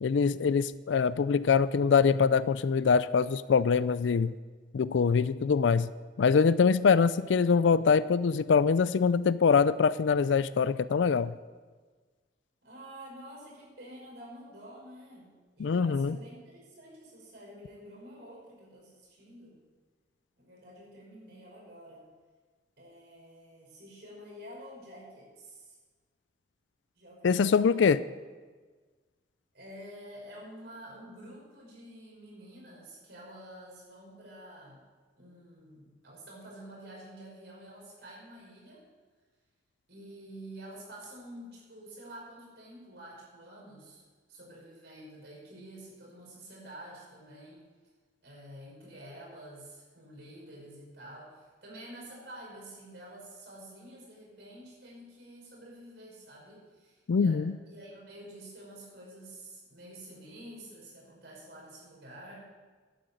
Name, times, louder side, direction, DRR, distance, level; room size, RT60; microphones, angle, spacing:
voice 1, 0.0-4.3 4.7-5.9 6.2-11.3 15.6-16.2 27.2-28.0 57.1-57.5, left 5 dB, 80° left, 16 dB, 0.4 m, -24 dB
voice 2, 12.6-19.6 20.4-22.0 22.8-25.8 27.0-27.8 29.5-34.8 35.2-38.8 39.9-44.0 44.3-47.6 48.2-57.4 57.7-62.4, right 1 dB, 65° right, -3 dB, 5.5 m, -49 dB
11.5 x 8.9 x 8.4 m, 1.4 s
head